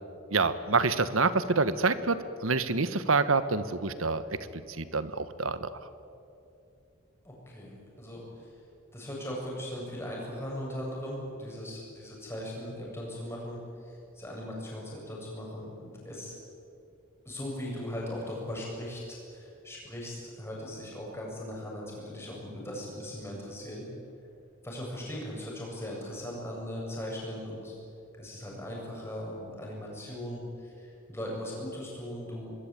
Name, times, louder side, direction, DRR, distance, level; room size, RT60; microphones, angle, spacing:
voice 1, 0.3-5.8, right 4 dB, 70° right, 13 dB, 1.3 m, -27 dB
voice 2, 7.2-8.5 8.9-16.3 17.2-23.8 24.6-27.8 28.2-32.5, left 1 dB, 10° left, -3 dB, 7.8 m, -39 dB
25.5 x 21.5 x 9.1 m, 2.7 s
head